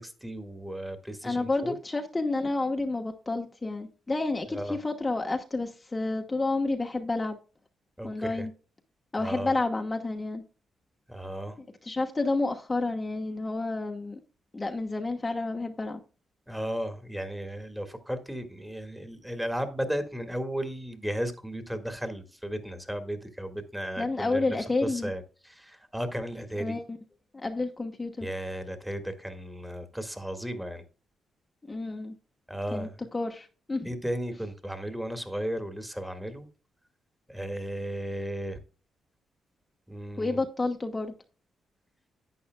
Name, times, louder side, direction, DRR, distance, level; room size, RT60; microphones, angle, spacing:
voice 1, 0.0-1.7 4.5-4.8 8.0-8.5 9.2-9.5 11.1-11.6 16.5-24.6 24.8-26.8 28.2-30.8 32.5-33.0 33.8-36.5 37.3-38.6 39.9-40.4, equal, 5° right, 1.9 m, -35 dB
voice 2, 1.2-7.4 8.0-8.5 9.1-10.4 11.8-14.2 14.5-16.0 24.0-25.1 26.6-27.0 27.3-28.3 31.7-32.2 32.7-32.9 33.1-33.9 40.2-41.1, left 2 dB, 25° left, 1.2 m, -30 dB
11.5 x 8.4 x 2.3 m
cardioid pair, 80°, 0 cm